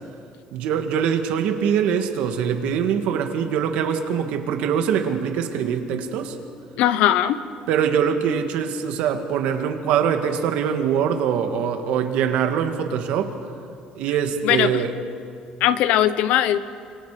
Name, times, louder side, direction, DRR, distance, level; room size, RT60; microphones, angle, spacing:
voice 1, 0.5-6.4 7.7-13.3 14.0-14.9, right 8 dB, 70° right, 6 dB, 2.1 m, -23 dB
voice 2, 6.8-7.4 14.4-14.8 15.6-16.6, left 12 dB, 70° left, 13 dB, 1.0 m, -19 dB
28.5 x 26.0 x 5.1 m, 2.5 s
cardioid pair, 165°, 2 cm